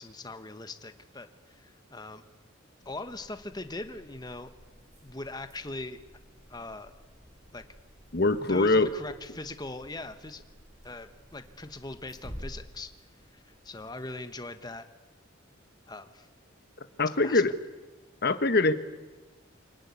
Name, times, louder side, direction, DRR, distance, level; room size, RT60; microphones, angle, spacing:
voice 1, 0.0-2.2 2.8-4.5 5.0-6.0 6.5-6.9 7.5-7.6 8.4-10.4 10.8-12.9 13.3-14.9 15.9-16.3 17.2-17.4, left 2 dB, 20° left, 9 dB, 1.1 m, -41 dB
sound 1, 2.8-14.5, equal, 35° right, 7.2 m, -51 dB
voice 2, 8.1-8.9 17.0-17.5 18.2-18.7, left 3 dB, 50° left, 12 dB, 1.2 m, -23 dB
25.5 x 19.0 x 9.6 m, 1.2 s
head